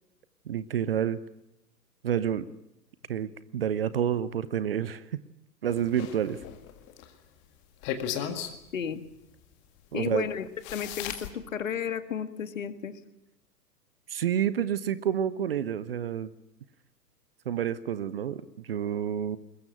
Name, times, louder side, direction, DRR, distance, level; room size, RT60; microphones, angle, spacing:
voice 1, 0.5-1.2 2.0-2.5 3.1-5.2 5.6-6.4 9.9-10.3 14.1-16.3 17.5-19.4, right 9 dB, 35° right, 17 dB, 0.9 m, -29 dB
sound 1, 5.7-7.1 7.8-8.5 10.0-10.1 10.6-11.3, left 9 dB, 20° left, 2.0 m, -35 dB
voice 2, 8.7-9.0 9.9-13.0, left 8 dB, 50° left, 11 dB, 2.0 m, -33 dB
21.5 x 21.5 x 9.0 m, 0.82 s
figure-of-eight pair, 120°, 49 cm